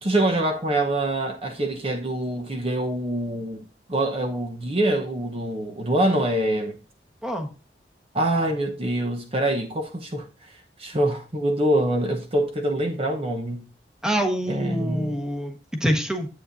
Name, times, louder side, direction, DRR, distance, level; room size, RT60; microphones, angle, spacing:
voice 1, 0.0-3.6 3.9-6.8 8.1-10.3 10.8-13.6 14.5-15.2, right 1 dB, 35° right, 1.0 m, -25 dB
voice 2, 14.0-16.3, equal, 5° right, 1.3 m, -26 dB
9.9 x 8.4 x 2.6 m
head